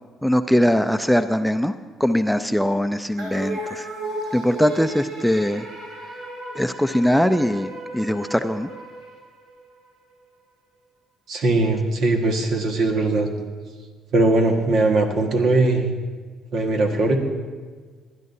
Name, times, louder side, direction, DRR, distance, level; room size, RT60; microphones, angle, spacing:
voice 1, 0.2-1.7 2.0-3.9 4.3-5.7 6.6-8.7, equal, ahead, 9 dB, 0.5 m, -21 dB
sound 1, 3.2-9.7, right 1 dB, 85° right, 2.3 m, -34 dB
voice 2, 11.3-13.3 14.1-15.9 16.5-17.2, right 2 dB, 65° right, 2 dB, 1.7 m, -20 dB
20.0 x 11.5 x 2.8 m, 1.5 s
supercardioid pair, 60°, 0 cm